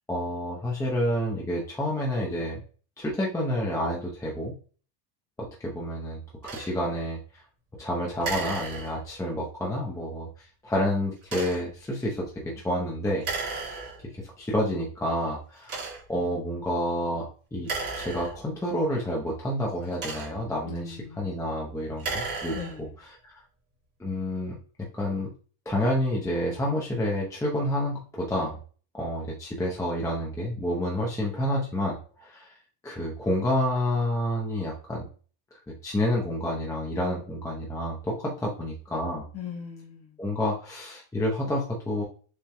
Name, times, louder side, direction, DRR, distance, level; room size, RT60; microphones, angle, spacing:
voice 1, 0.1-2.6 3.0-4.5 5.4-7.2 7.8-13.3 14.0-14.1 14.4-17.7 18.0-22.6 23.2-23.4 24.0-24.6 24.9-25.3 25.7-28.6 28.9-32.5 32.8-35.1 35.8-39.3 40.2-42.0, left 1 dB, 5° left, -3 dB, 0.8 m, -29 dB
sound 1, 6.4-6.7 8.2-9.3 11.2-11.8 13.2-14.2 14.9-15.0 15.6-16.2 17.6-18.7 19.7-20.6 21.9-23.0, right 3 dB, 30° right, 2.1 m, -35 dB
voice 2, 20.6-21.4 22.5-23.0 39.3-40.2, left 7 dB, 30° left, 1 dB, 1.3 m, -40 dB
7.1 x 3.3 x 2.2 m, 0.41 s
cardioid pair, 150°, 47 cm